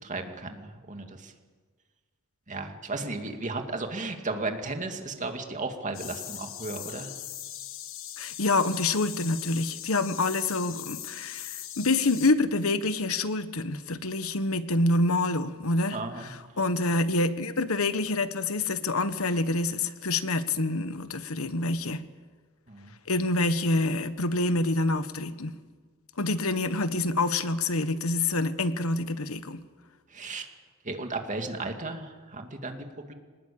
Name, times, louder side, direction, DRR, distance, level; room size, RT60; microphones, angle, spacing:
voice 1, 0.0-1.3 2.5-7.1 15.9-16.3 22.7-22.9 30.1-30.5 30.8-33.1, right 3 dB, 35° right, 5 dB, 2.4 m, -35 dB
sound 1, 5.9-12.3, left 12 dB, 65° left, 1.5 m, -40 dB
voice 2, 8.2-16.3 16.6-22.0 23.1-25.5 26.2-29.6, left 2 dB, 85° left, 12 dB, 1.3 m, -27 dB
25.5 x 19.5 x 8.7 m, 1.5 s
head